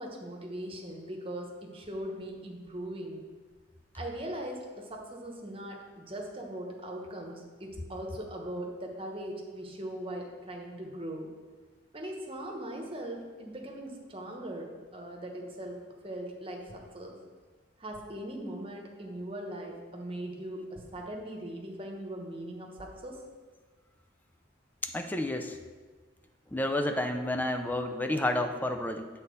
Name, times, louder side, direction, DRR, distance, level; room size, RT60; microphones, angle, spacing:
voice 1, 0.0-3.2 3.9-11.3 11.9-17.2 17.8-23.2, right 1 dB, 30° right, 0 dB, 1.2 m, -40 dB
voice 2, 24.8-25.6 26.5-29.1, left 1 dB, 10° left, 6 dB, 0.5 m, -30 dB
8.3 x 4.2 x 6.8 m, 1.5 s
head